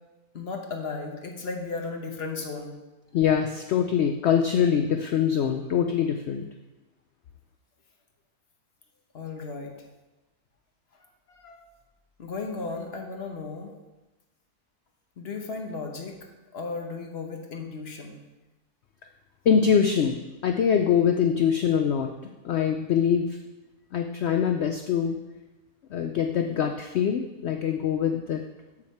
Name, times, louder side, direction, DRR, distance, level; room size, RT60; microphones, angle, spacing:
voice 1, 0.3-2.8 9.1-9.7 10.9-11.6 12.2-13.7 15.2-16.3 16.5-18.2, left 4 dB, 45° left, 2 dB, 1.1 m, -35 dB
voice 2, 3.1-6.4 19.5-22.1 22.4-23.4 23.9-25.2 25.9-28.4, left 7 dB, 75° left, 5 dB, 0.6 m, -24 dB
7.4 x 6.3 x 4.3 m, 1.1 s
omnidirectional pair, 1.6 m